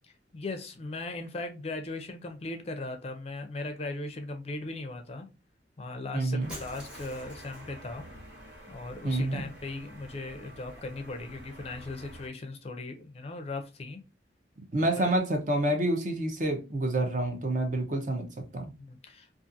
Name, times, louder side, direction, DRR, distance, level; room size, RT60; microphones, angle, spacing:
voice 1, 0.3-5.3 5.8-8.1 8.7-14.0 14.8-15.1 18.8-19.3, left 2 dB, 35° left, 0.4 m, -38 dB
voice 2, 6.1-6.5 9.0-9.5 14.7-18.3 18.5-18.7, right 1 dB, 45° right, 0.6 m, -28 dB
sound 1, 6.4-12.3, equal, 75° right, 1.5 m, -48 dB
Shatter, 6.5-7.8, equal, 5° right, 0.8 m, -46 dB
2.5 x 2.4 x 2.6 m
head